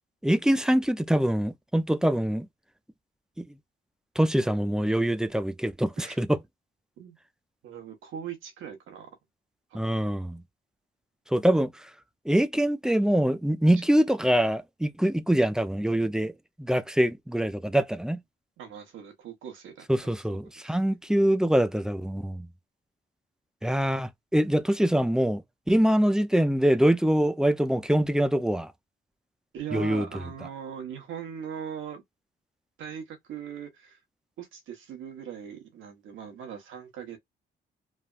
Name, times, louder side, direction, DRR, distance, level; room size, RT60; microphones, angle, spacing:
voice 1, 0.2-2.5 3.4-3.5 4.2-6.4 9.7-10.4 11.3-11.7 12.3-16.3 16.6-18.2 19.9-22.5 23.6-25.4 25.7-28.7 29.7-30.0, right 1 dB, 5° right, 0.4 m, -24 dB
voice 2, 7.6-9.1 9.7-10.0 18.6-19.9 20.3-20.8 29.5-32.0 32.8-34.0 34.4-37.2, right 8 dB, 80° right, 1.1 m, -40 dB
3.3 x 2.2 x 2.4 m
cardioid pair, 90°, 20 cm